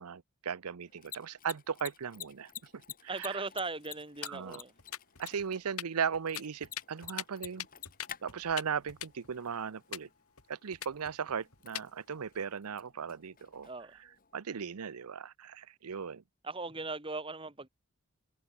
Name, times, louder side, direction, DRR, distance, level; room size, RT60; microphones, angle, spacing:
voice 1, 0.0-2.7 3.0-3.4 4.2-4.6 5.2-7.7 8.2-10.1 10.5-13.7 14.3-16.2, right 6 dB, 85° right, 0.6 m, -37 dB
Mechanisms, 0.8-14.4, left 11 dB, 40° left, 3.0 m, -52 dB
voice 2, 3.1-4.7 13.6-13.9 16.4-17.7, right 3 dB, 25° right, 2.4 m, -38 dB
sound 1, 3.6-4.5 4.8-5.5 5.8-5.9 6.1-8.6 8.9-9.5 9.9-10.0 10.4-10.5 10.7-11.9 12.2-12.4, left 11 dB, 75° left, 3.9 m, -42 dB
head